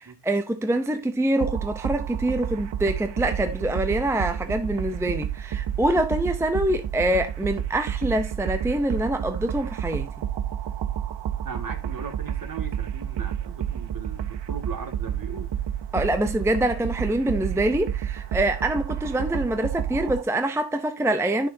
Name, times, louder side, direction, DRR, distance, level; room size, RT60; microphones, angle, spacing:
voice 1, 0.0-10.1 15.9-21.5, right 1 dB, 5° right, 0.6 m, -25 dB
sound 1, 1.4-20.2, right 10 dB, 65° right, 0.7 m, -30 dB
voice 2, 11.4-15.5, right 4 dB, 45° right, 2.1 m, -38 dB
11.0 x 6.5 x 2.7 m
wide cardioid pair, 140°, 46 cm